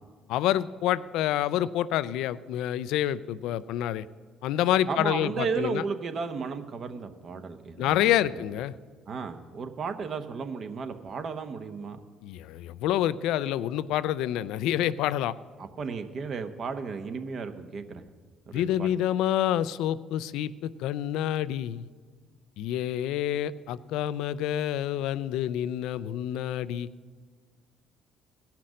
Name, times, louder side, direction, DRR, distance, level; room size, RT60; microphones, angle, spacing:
voice 1, 0.3-4.1 4.4-5.8 7.8-8.7 12.2-15.4 18.5-21.9 22.6-26.9, left 12 dB, 80° left, 17 dB, 0.3 m, -28 dB
voice 2, 4.9-8.4 9.1-12.0 15.6-18.0 18.5-18.9, right 5 dB, 55° right, 8 dB, 0.9 m, -34 dB
17.0 x 5.8 x 6.3 m, 1.5 s
supercardioid pair, 70°, 0 cm